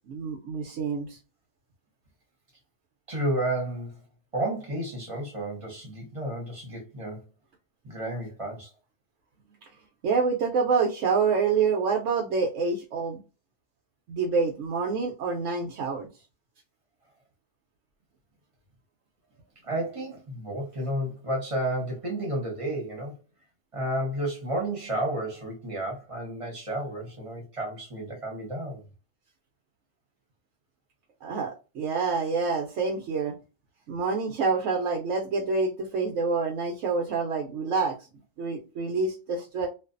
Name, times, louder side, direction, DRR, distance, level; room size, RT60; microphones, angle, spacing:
voice 1, 0.1-1.2 10.0-13.2 14.1-16.1 31.2-33.4 33.9-38.0 38.4-39.7, right 4 dB, 85° right, 1.0 m, -27 dB
voice 2, 3.1-4.0 4.3-7.2 7.8-8.7 19.6-23.2 23.7-28.8, right 1 dB, 30° right, 0.9 m, -31 dB
2.5 x 2.3 x 2.4 m
omnidirectional pair, 1.3 m